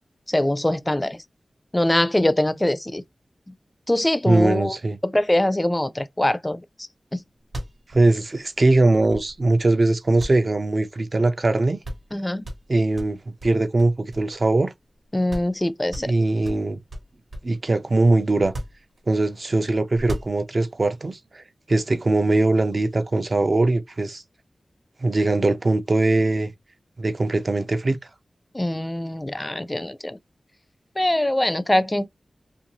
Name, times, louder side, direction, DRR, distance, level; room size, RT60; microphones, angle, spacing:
voice 1, 0.3-1.2 1.7-3.0 3.9-4.7 5.0-6.6 12.1-12.5 15.1-16.1 28.5-30.2 31.0-32.1, left 1 dB, 20° left, 0.3 m, -22 dB
voice 2, 4.3-5.0 7.9-11.8 12.7-14.7 16.0-16.8 17.4-18.5 19.1-24.2 25.0-26.5 27.0-28.0, right 2 dB, 50° right, 0.4 m, -21 dB
sound 1, 7.4-9.6 10.2-11.2 11.5-11.6 11.8-12.1 12.4-14.6 14.9-15.0 15.3-15.6 15.9-17.6 18.4-19.4 19.9-20.8, right 1 dB, 75° right, 1.0 m, -36 dB
2.5 x 2.3 x 2.9 m
wide cardioid pair, 65°, 0 cm